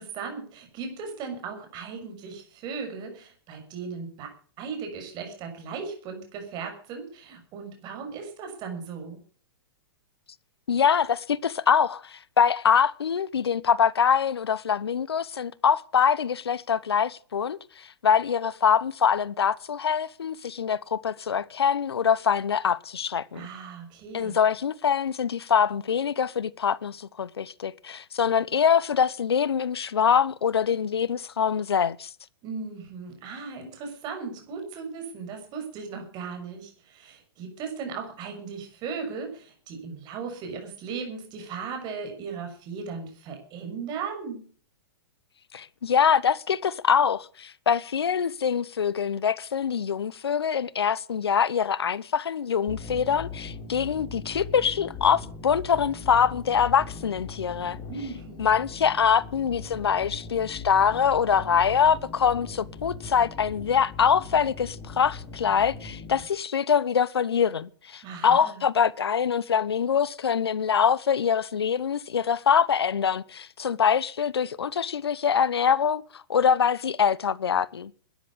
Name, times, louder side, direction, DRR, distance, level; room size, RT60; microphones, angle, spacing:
voice 1, 0.0-4.3 4.6-9.2 23.3-24.4 32.4-44.4 57.9-58.5 68.0-68.6, right 5 dB, 35° right, 6.2 m, -37 dB
voice 2, 10.7-23.5 24.1-32.1 45.5-57.8 58.4-77.9, left 7 dB, 90° left, 0.9 m, -24 dB
sound 1, 52.7-66.2, left 4 dB, 30° left, 3.7 m, -40 dB
13.0 x 10.5 x 8.6 m
hypercardioid pair, 130°, 13 cm